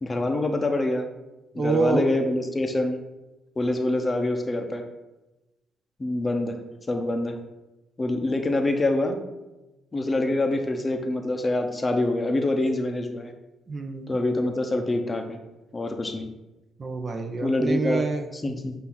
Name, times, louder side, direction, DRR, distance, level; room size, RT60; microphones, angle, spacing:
voice 1, 0.0-1.1 1.5-3.0 3.6-4.8 6.0-6.6 6.9-7.4 8.0-9.2 9.9-13.3 14.1-15.4 15.7-16.3 17.4-18.1 18.3-18.7, left 2 dB, 25° left, 5 dB, 0.8 m, -25 dB
voice 2, 1.6-2.1 13.7-14.2 16.8-18.3, right 3 dB, 40° right, 5 dB, 0.8 m, -27 dB
8.1 x 2.7 x 5.9 m, 1.0 s
cardioid pair, 90°, 0 cm